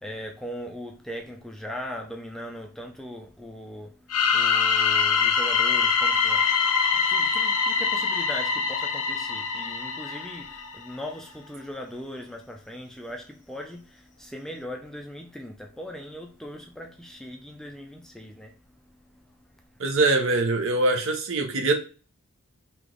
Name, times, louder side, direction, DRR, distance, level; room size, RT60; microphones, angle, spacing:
voice 1, 0.0-3.9 4.3-6.5 7.1-18.5, equal, ahead, 0.3 m, -39 dB
sound 1, 4.1-10.8, left 5 dB, 90° left, 0.7 m, -24 dB
voice 2, 19.8-21.7, right 2 dB, 60° right, 0.7 m, -23 dB
3.3 x 2.9 x 3.7 m
head